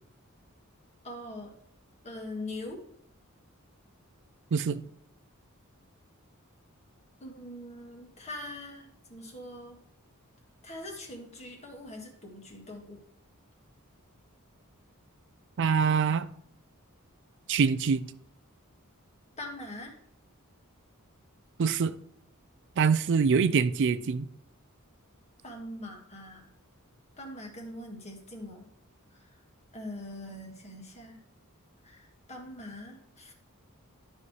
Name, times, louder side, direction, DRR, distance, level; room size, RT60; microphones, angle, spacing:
voice 1, 1.0-1.5 2.0-2.8 7.2-9.8 10.6-13.0 19.4-20.0 25.4-26.4 27.2-28.7 29.1-29.3 29.7-31.2 31.8-33.3, left 1 dB, 30° left, 1.8 m, -42 dB
voice 2, 4.5-4.8 15.6-16.3 17.5-18.0 21.6-21.9 22.8-24.3, right 5 dB, 55° right, 0.4 m, -24 dB
12.5 x 5.5 x 3.3 m
head